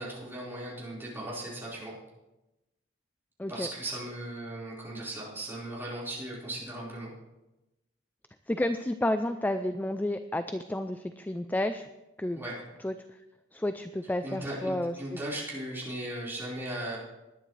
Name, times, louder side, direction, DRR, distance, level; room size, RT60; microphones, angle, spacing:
voice 1, 0.0-1.9 3.5-7.1 12.3-12.5 14.2-17.0, right 1 dB, 10° right, -7 dB, 4.5 m, -37 dB
voice 2, 8.5-11.8 12.2-12.4 12.8-12.9 13.5-15.2, left 1 dB, 10° left, 9 dB, 0.4 m, -31 dB
20.0 x 10.0 x 3.3 m, 0.98 s
head